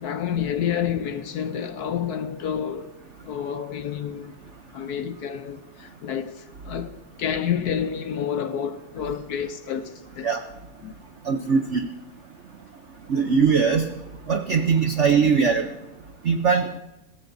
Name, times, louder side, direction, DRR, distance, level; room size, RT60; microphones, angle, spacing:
voice 1, 0.0-2.9 3.2-4.3 4.7-10.3 10.8-10.9, left 8 dB, 65° left, 1.0 m, -29 dB
voice 2, 11.3-11.9 13.1-13.9 14.3-15.7 16.2-16.7, right 6 dB, 65° right, 0.7 m, -20 dB
22.0 x 15.5 x 2.6 m
omnidirectional pair, 2.1 m